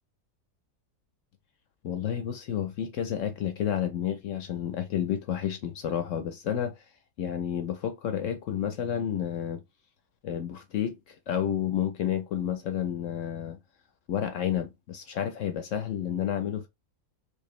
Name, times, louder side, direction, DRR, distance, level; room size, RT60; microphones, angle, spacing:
voice 1, 1.8-6.8 7.2-9.6 10.2-13.6 14.1-16.7, left 9 dB, 65° left, 0.8 m, -30 dB
4.6 x 2.4 x 3.1 m
omnidirectional pair, 1.7 m